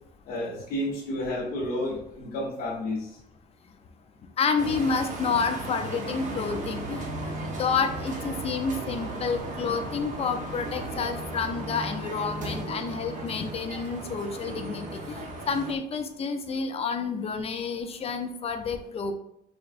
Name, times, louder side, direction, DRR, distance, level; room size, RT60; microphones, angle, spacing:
voice 1, 0.3-3.2, left 1 dB, 80° left, -7 dB, 1.2 m, -31 dB
voice 2, 4.4-7.0 7.6-15.2 15.5-19.1, left 5 dB, 35° left, 7 dB, 0.5 m, -29 dB
sound 1, 4.6-15.7, right 2 dB, 50° right, 0.9 m, -35 dB
4.8 x 2.4 x 2.4 m, 0.76 s
cardioid pair, 110°, 17 cm